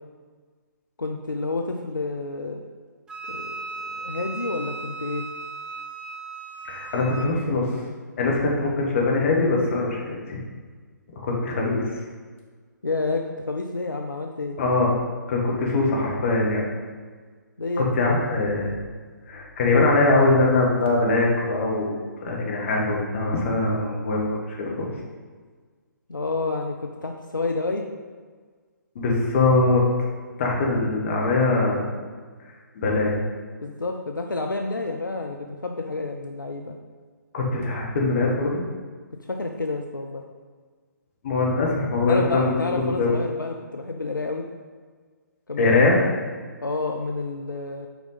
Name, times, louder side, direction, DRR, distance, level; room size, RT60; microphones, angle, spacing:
voice 1, 1.0-2.6 3.3-5.3 12.8-14.6 17.6-18.0 26.1-27.8 33.6-36.8 39.3-40.2 42.1-44.5 45.5-45.8 46.6-47.9, left 3 dB, 85° left, 3 dB, 0.6 m, -29 dB
Wind instrument woodwind instrument, 3.1-7.3, right 3 dB, 10° right, 0.5 m, -36 dB
voice 2, 6.7-7.7 8.2-10.4 11.2-11.8 14.6-14.9 15.3-16.6 17.8-18.7 19.3-22.0 22.2-24.3 24.6-24.9 29.0-29.8 30.4-31.9 32.8-33.2 37.3-38.6 41.2-43.1 45.6-46.0, left 3 dB, 45° left, -2 dB, 1.8 m, -22 dB
8.0 x 4.9 x 4.1 m, 1.5 s
figure-of-eight pair, 135°, 10 cm